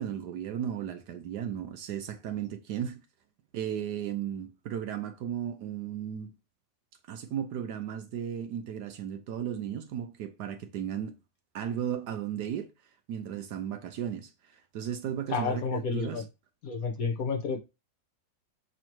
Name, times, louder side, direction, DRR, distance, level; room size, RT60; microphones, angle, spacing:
voice 1, 0.0-3.0 3.5-6.3 7.1-11.2 11.5-12.7 13.1-16.2, right 9 dB, 70° right, 1.1 m, -35 dB
voice 2, 15.3-16.2 16.6-17.6, left 5 dB, 55° left, 1.2 m, -30 dB
7.0 x 3.1 x 4.5 m
omnidirectional pair, 2.1 m